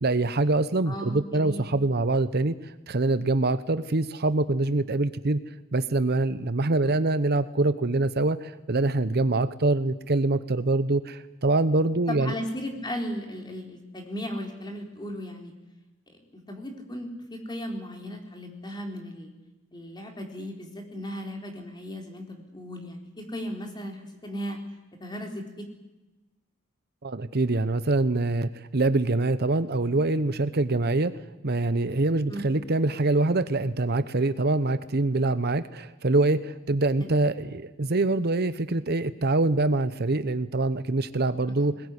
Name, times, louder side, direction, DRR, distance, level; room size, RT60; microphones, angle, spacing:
voice 1, 0.0-2.6 2.9-5.4 5.7-12.3 27.0-31.1 31.4-41.7, right 2 dB, 50° right, 13 dB, 0.9 m, -24 dB
voice 2, 0.9-1.7 6.8-6.9 12.1-15.5 16.3-19.3 19.7-24.6 25.0-25.7 32.3-32.5 37.0-37.2 41.6-41.7, equal, 20° left, 3 dB, 4.1 m, -36 dB
21.0 x 20.0 x 9.8 m, 1.1 s
head